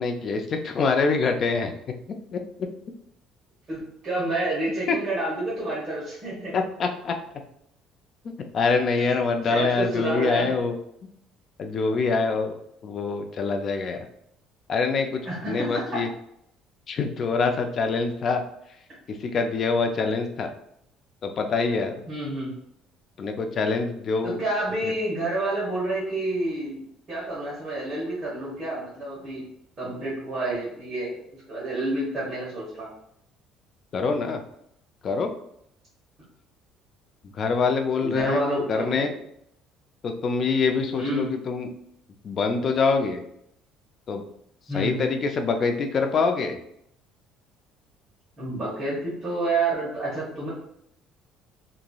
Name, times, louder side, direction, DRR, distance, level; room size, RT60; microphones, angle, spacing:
voice 1, 0.0-1.7 2.3-2.7 4.9-5.0 6.5-7.1 8.2-10.8 11.6-12.5 12.8-14.1 14.7-15.2 15.5-16.1 16.9-18.4 19.1-20.5 21.2-22.0 23.2-24.4 33.9-34.4 35.0-35.3 37.3-38.4 38.7-39.1 40.0-41.7 42.2-43.2 44.1-44.2 44.7-46.6, left 4 dB, 40° left, 5 dB, 0.3 m, -25 dB
voice 2, 3.7-6.5 8.9-10.5 15.2-16.0 22.1-22.5 24.2-26.8 27.1-29.4 29.8-31.1 31.5-32.9 38.0-39.1 40.9-41.3 44.7-45.0 48.4-50.5, right 2 dB, 30° right, -9 dB, 1.0 m, -29 dB
2.9 x 2.5 x 2.3 m, 0.73 s
cardioid pair, 140°, 0 cm